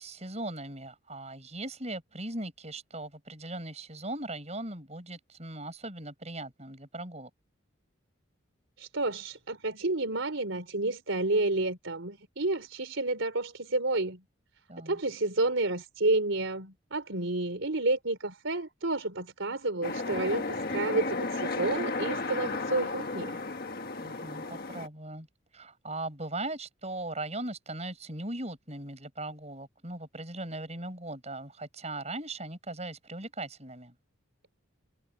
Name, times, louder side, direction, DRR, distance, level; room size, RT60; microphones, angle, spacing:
voice 1, 0.0-7.3 14.7-15.0 24.0-25.3 25.5-33.9, right 2 dB, 35° right, 6.5 m, -39 dB
voice 2, 8.8-14.2 14.9-23.4, right 2 dB, 75° right, 3.6 m, -30 dB
sound 1, 19.8-24.9, left 3 dB, 50° left, 1.6 m, -33 dB
head